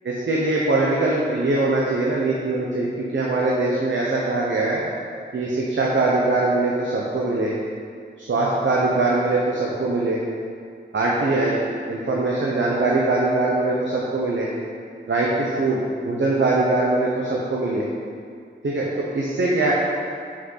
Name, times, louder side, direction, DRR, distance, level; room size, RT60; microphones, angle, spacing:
voice 1, 0.0-4.8 5.3-7.5 8.2-10.2 10.9-11.6 11.9-14.5 15.0-17.8 18.6-19.7, right 2 dB, 80° right, -4 dB, 1.0 m, -22 dB
6.6 x 6.4 x 5.6 m, 2.3 s
wide cardioid pair, 90°, 19 cm